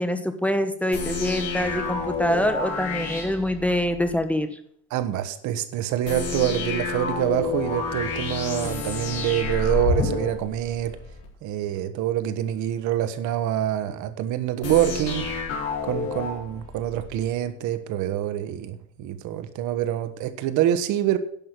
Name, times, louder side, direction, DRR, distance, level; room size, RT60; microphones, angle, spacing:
voice 1, 0.0-4.6, equal, 5° left, 8 dB, 1.1 m, -25 dB
sound 1, 0.9-4.2 6.1-11.3 14.6-17.3, left 4 dB, 55° left, 4.1 m, -29 dB
voice 2, 4.9-11.0 11.4-15.3 15.8-21.2, right 12 dB, 80° right, 11 dB, 1.2 m, -26 dB
10.5 x 6.1 x 8.2 m, 0.63 s
cardioid pair, 135°, 29 cm